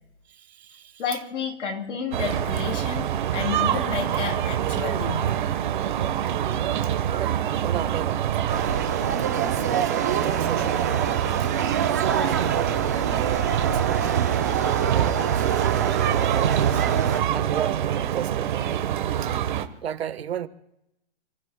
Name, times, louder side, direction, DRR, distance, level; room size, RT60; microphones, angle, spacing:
voice 1, 0.3-1.0 6.8-8.3 9.3-11.5 11.9-14.3 14.6-15.4 16.0-16.9 17.3-18.7 19.2-19.3 19.8-20.5, right 9 dB, 65° right, 1.3 m, -34 dB
voice 2, 1.0-5.3, left 6 dB, 85° left, 3.3 m, -31 dB
sound 1, 2.1-19.7, right 10 dB, 45° right, 1.2 m, -25 dB
sound 2, 8.5-17.2, right 8 dB, 15° right, 0.4 m, -27 dB
29.5 x 15.0 x 2.2 m
hypercardioid pair, 175°, 34 cm